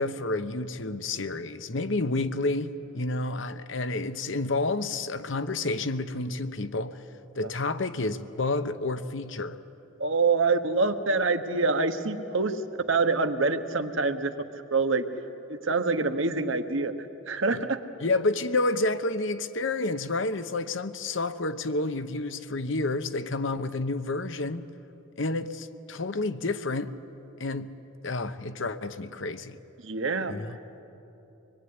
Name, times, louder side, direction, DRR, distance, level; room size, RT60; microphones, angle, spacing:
voice 1, 0.0-7.0 7.4-9.6 18.0-24.6 25.2-26.9 27.4-27.7 28.0-29.6 30.3-30.6, left 2 dB, 65° left, 1.0 m, -29 dB
voice 2, 10.0-14.3 14.7-15.0 15.5-16.9 17.3-17.8 29.8-30.3, right 3 dB, 65° right, 1.3 m, -26 dB
25.0 x 21.5 x 9.6 m
head